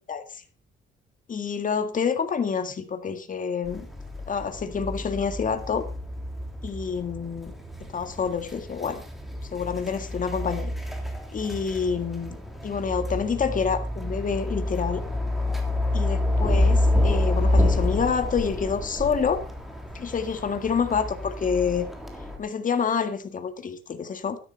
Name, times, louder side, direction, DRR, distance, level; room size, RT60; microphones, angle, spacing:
voice 1, 0.1-0.4 1.3-3.9 4.3-5.8 6.6-7.5 7.9-9.0 9.5-10.7 11.3-12.4 12.6-15.0 15.9-19.4 19.9-21.9 22.4-24.4, left 6 dB, 40° left, 8 dB, 1.8 m, -27 dB
sound 1, 3.7-22.4, left 1 dB, ahead, 3.4 m, -28 dB
12.5 x 11.0 x 4.2 m, 0.38 s
cardioid pair, 90°, 20 cm